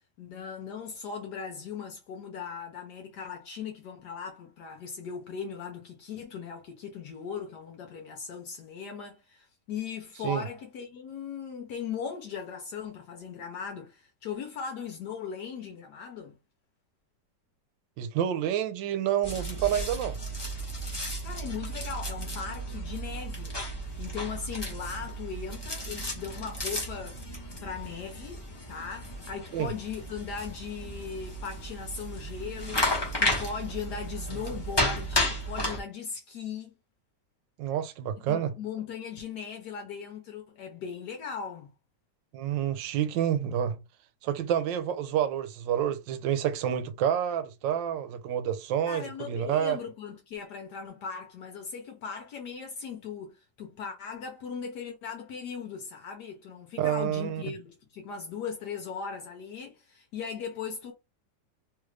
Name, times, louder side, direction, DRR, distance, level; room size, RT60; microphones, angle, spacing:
voice 1, 0.2-16.4 21.2-27.2 27.6-32.9 33.2-36.7 38.3-41.7 48.9-60.9, left 6 dB, 70° left, 1.2 m, -38 dB
voice 2, 18.0-20.2 29.5-29.7 37.6-38.5 42.3-43.8 44.2-49.8 56.8-57.4, right 10 dB, 85° right, 1.3 m, -28 dB
sound 1, 19.2-35.8, equal, 20° left, 0.7 m, -33 dB
3.2 x 2.4 x 3.2 m
omnidirectional pair, 2.0 m